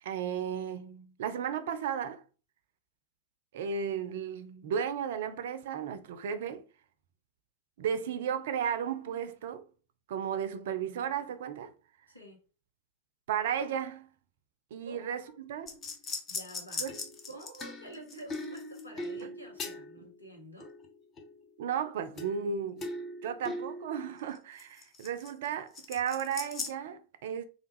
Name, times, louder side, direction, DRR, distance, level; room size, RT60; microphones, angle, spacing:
voice 1, 0.0-2.2 3.5-6.6 7.8-9.6 10.1-11.7 13.3-14.1 14.7-15.7 16.8-17.0 20.0-20.1 21.6-22.9 23.2-27.4, right 8 dB, 55° right, 0.4 m, -34 dB
voice 2, 12.1-12.4 14.8-15.2 16.3-16.9 17.3-20.7, right 1 dB, 85° left, 1.0 m, -48 dB
sound 1, 15.7-20.1 20.6-21.4 22.2-22.5 22.8-25.5 25.7-26.7, left 3 dB, 25° left, 0.7 m, -40 dB
3.3 x 2.3 x 3.1 m
figure-of-eight pair, 90°, 0 cm